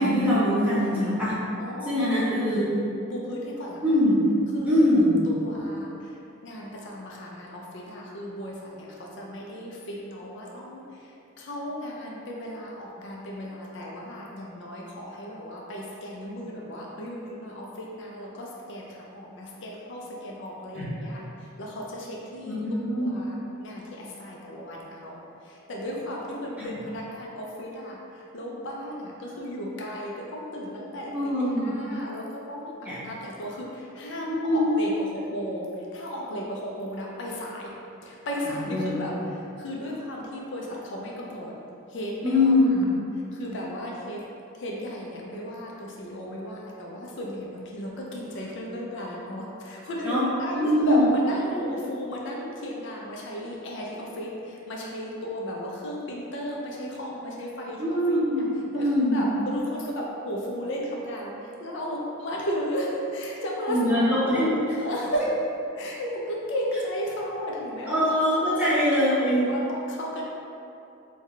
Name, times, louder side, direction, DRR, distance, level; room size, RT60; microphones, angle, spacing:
voice 1, 0.0-1.4 1.8-2.7 3.8-4.2 4.6-5.2 20.7-21.0 22.4-23.2 26.6-26.7 31.1-31.7 32.8-33.0 34.2-34.6 38.4-39.1 42.2-42.9 50.0-50.3 50.5-51.0 57.8-59.2 63.7-64.5 67.9-69.4, left 1 dB, 5° right, -10 dB, 0.7 m, -23 dB
voice 2, 0.7-1.1 1.6-2.8 3.1-3.8 4.5-6.1 6.4-10.8 11.4-18.9 19.1-21.2 21.6-22.6 23.0-23.3 23.6-25.2 25.5-31.1 31.6-37.8 38.0-39.1 39.6-41.5 41.9-42.5 43.3-44.2 44.6-58.2 58.7-61.3 61.6-64.4 64.7-65.3 65.8-68.2 68.4-68.7 69.5-70.2, equal, 60° left, -3 dB, 0.4 m, -34 dB
3.3 x 2.2 x 3.5 m, 2.7 s
head